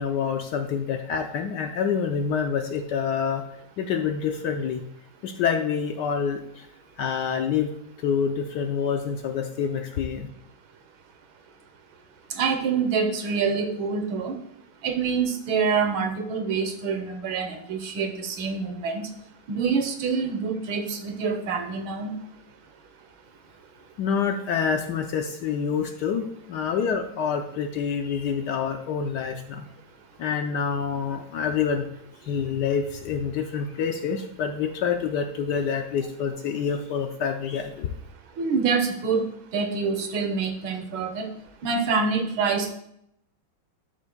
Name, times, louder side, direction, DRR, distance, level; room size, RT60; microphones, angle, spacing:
voice 1, 0.0-3.4 3.8-4.8 5.2-6.7 7.0-7.7 8.0-10.3 24.0-29.6 30.2-31.9 32.2-37.9, left 6 dB, 70° left, 5 dB, 1.0 m, -27 dB
voice 2, 12.3-14.4 14.8-19.0 19.5-22.1 38.4-41.3 41.6-42.7, right 5 dB, 75° right, 6 dB, 1.7 m, -26 dB
12.0 x 6.3 x 2.2 m, 0.74 s
omnidirectional pair, 2.2 m